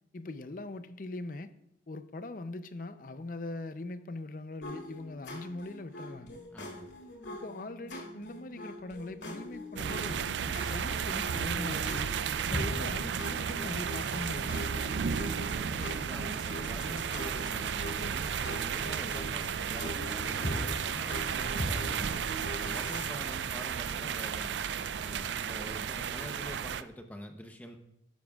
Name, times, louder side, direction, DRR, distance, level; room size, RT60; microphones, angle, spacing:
voice 1, 0.1-1.5 1.9-6.4 7.3-12.1 12.5-15.0, left 2 dB, 50° left, 0.6 m, -41 dB
sound 1, 4.6-23.1, left 1 dB, 85° left, 2.5 m, -42 dB
voice 2, 6.5-6.9 15.3-22.2 22.5-24.6 24.9-27.8, equal, 10° left, 0.8 m, -45 dB
sound 2, 9.8-26.8, right 7 dB, 80° right, 0.4 m, -33 dB
12.5 x 11.5 x 2.4 m
head